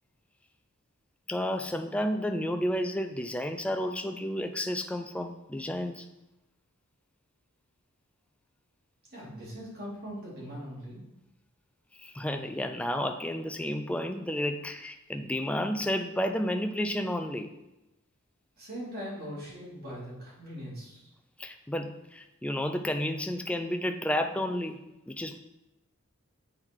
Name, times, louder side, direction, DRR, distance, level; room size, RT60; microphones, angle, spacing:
voice 1, 1.3-6.1 12.0-17.5 21.4-24.8 25.1-25.4, left 1 dB, 5° left, 6 dB, 0.3 m, -31 dB
voice 2, 9.1-11.0 18.6-21.1, equal, 45° right, -6 dB, 2.6 m, -41 dB
8.0 x 3.9 x 4.3 m, 0.96 s
head